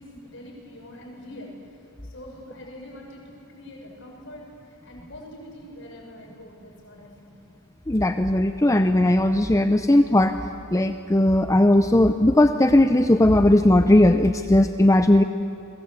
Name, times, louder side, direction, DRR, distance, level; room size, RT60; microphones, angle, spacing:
voice 1, 0.0-1.6 2.0-4.5 4.8-7.4, left 1 dB, 60° left, -1 dB, 6.7 m, -43 dB
voice 2, 7.9-10.4 10.7-15.2, left 1 dB, 15° left, 8 dB, 0.6 m, -18 dB
29.0 x 22.5 x 8.2 m, 2.5 s
head